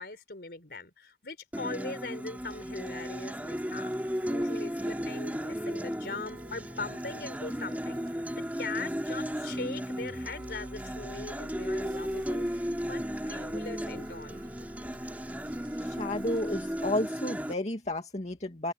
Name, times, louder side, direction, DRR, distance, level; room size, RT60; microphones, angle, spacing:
voice 1, 0.0-14.4, left 3 dB, 60° left, 3.9 m, -41 dB
Acoustic guitar, 1.5-17.5, equal, 10° right, 4.2 m, -35 dB
sound 1, 2.4-16.9, right 1 dB, 60° right, 7.8 m, -51 dB
voice 2, 15.8-18.7, left 1 dB, 40° left, 2.3 m, -32 dB
head